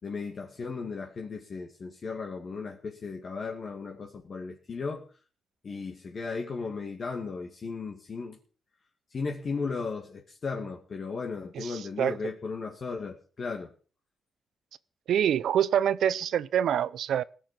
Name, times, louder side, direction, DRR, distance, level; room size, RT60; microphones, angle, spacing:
voice 1, 0.0-5.0 5.6-8.4 9.1-13.7, left 4 dB, 45° left, 2.3 m, -36 dB
voice 2, 11.6-12.1 15.1-17.2, right 9 dB, 85° right, 0.6 m, -26 dB
18.5 x 7.0 x 7.6 m
wide cardioid pair, 130°, 0 cm